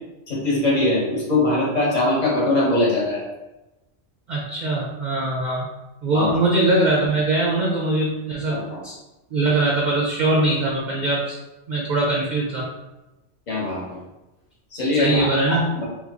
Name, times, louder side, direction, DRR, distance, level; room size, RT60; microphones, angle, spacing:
voice 1, 0.3-3.2 6.1-6.4 8.5-8.8 13.5-14.0 14.7-15.8, left 2 dB, 35° left, -5 dB, 1.0 m, -22 dB
voice 2, 4.3-5.7 6.0-8.6 8.8-8.9 9.3-11.4 11.7-12.7 15.0-15.7, right 2 dB, 55° right, -3 dB, 0.5 m, -21 dB
2.9 x 2.2 x 3.5 m, 1.0 s
omnidirectional pair, 1.3 m